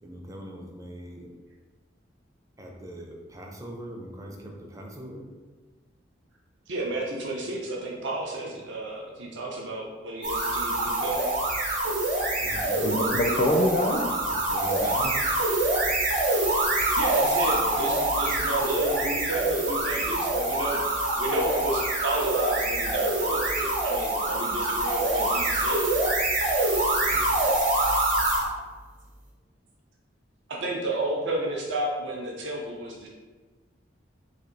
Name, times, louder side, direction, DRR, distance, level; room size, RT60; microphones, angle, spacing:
voice 1, 0.0-1.3 2.6-5.3 12.4-13.2 14.3-15.2 27.1-27.3, equal, 20° right, 1 dB, 0.5 m, -41 dB
voice 2, 6.7-11.3 17.0-25.8 30.5-33.1, right 1 dB, 70° right, -2 dB, 0.6 m, -32 dB
sound 1, 10.2-28.5, right 2 dB, 45° right, 1.0 m, -25 dB
voice 3, 12.8-14.1, left 1 dB, 35° left, 1 dB, 0.4 m, -24 dB
3.3 x 2.6 x 3.8 m, 1.3 s
head